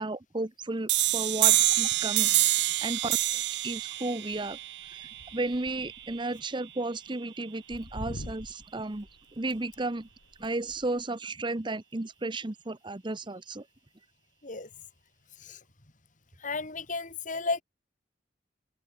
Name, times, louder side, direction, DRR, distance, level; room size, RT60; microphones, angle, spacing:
voice 1, 0.0-2.3 2.8-3.2 3.6-4.6 4.9-9.1 9.4-10.1 10.4-13.6, right 2 dB, 25° right, 0.9 m, -33 dB
sound 1, 0.9-6.3, right 15 dB, 65° right, 1.3 m, -27 dB
sound 2, 4.3-6.3 6.5-6.6 7.0-7.1 7.7-11.0, left 1 dB, 75° left, 2.5 m, -45 dB
voice 2, 16.4-17.6, left 3 dB, 45° left, 2.7 m, -33 dB
open air
head